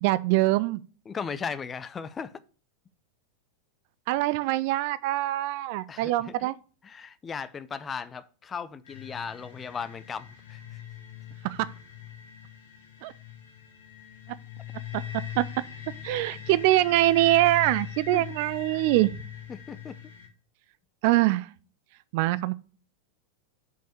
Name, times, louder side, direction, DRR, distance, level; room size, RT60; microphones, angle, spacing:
voice 1, 0.0-0.8 4.1-6.5 11.4-11.7 13.0-13.1 14.9-15.0 15.4-15.5 16.0-19.1 21.0-21.5 22.1-22.5, right 17 dB, 50° right, 0.4 m, -23 dB
voice 2, 1.1-2.3 5.9-6.5 6.8-10.6 16.3-16.4 18.1-18.3 18.7-18.9 19.5-20.0, left 6 dB, 20° left, 0.5 m, -37 dB
sound 1, 8.9-20.3, left 10 dB, 65° left, 1.6 m, -41 dB
5.5 x 5.3 x 6.5 m
figure-of-eight pair, 90°, 0 cm